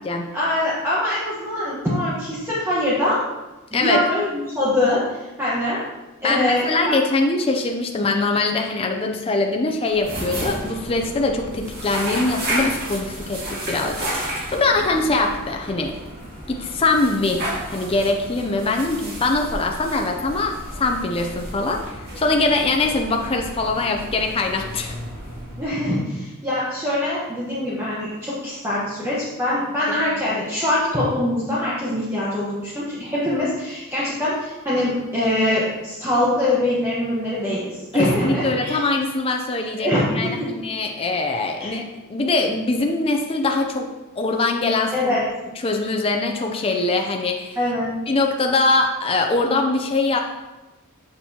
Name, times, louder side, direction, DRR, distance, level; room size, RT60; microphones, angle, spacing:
voice 1, 0.3-3.2 3.7-5.8 6.2-6.9 25.6-38.8 39.7-40.5 41.6-41.7 44.9-45.3 47.6-47.9, left 1 dB, 10° right, -9 dB, 1.2 m, -23 dB
voice 2, 6.2-16.0 16.5-17.4 17.7-24.9 37.9-41.8 42.1-43.9 44.2-45.2 45.6-47.6 48.1-50.2, left 3 dB, 25° left, 2 dB, 0.5 m, -22 dB
sound 1, 9.9-26.0, right 1 dB, 45° right, 2.1 m, -32 dB
7.2 x 6.7 x 2.8 m, 1.1 s
head